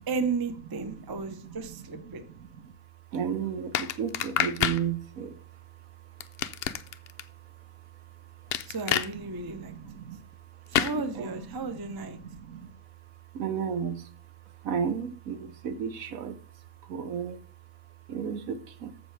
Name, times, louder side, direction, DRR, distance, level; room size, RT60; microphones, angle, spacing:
voice 1, 0.0-2.2 8.7-9.7 10.7-12.2, right 4 dB, 25° right, 0.5 m, -33 dB
voice 2, 0.7-2.7 3.1-8.7 9.1-12.7 13.1-14.1 14.5-17.5 18.1-19.0, right 7 dB, 65° right, 1.2 m, -36 dB
sound 1, 3.7-4.8 6.2-7.2 8.5-9.1 10.7-11.0, left 9 dB, 70° left, 0.6 m, -27 dB
14.0 x 5.3 x 3.3 m
omnidirectional pair, 1.6 m